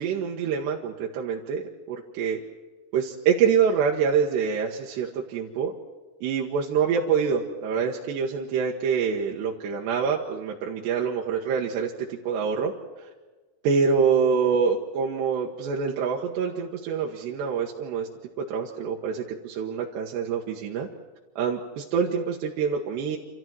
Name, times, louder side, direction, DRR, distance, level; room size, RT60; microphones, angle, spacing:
voice 1, 0.0-2.4 2.9-5.7 6.2-12.7 13.6-18.1 18.4-20.9 21.4-23.2, right 6 dB, 80° right, -1 dB, 3.4 m, -26 dB
28.0 x 14.0 x 7.7 m, 1.3 s
omnidirectional pair, 4.9 m